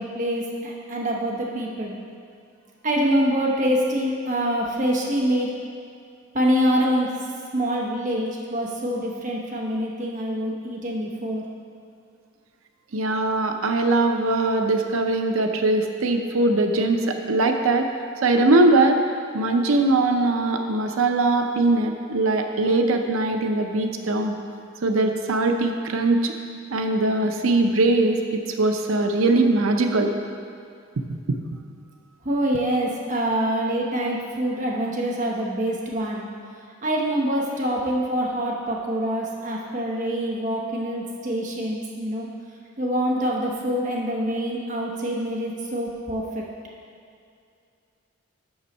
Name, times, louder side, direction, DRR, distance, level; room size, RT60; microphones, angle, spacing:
voice 1, 0.0-2.0 2.8-5.5 6.3-7.1 7.5-11.4 32.2-36.3 36.8-42.3 42.8-46.4, equal, 35° right, -2 dB, 0.9 m, -25 dB
voice 2, 12.9-17.9 18.2-19.0 19.3-24.3 24.8-26.3 26.7-30.1 31.0-31.1, right 2 dB, 75° right, 5 dB, 0.6 m, -21 dB
7.0 x 6.2 x 5.3 m, 2.3 s
head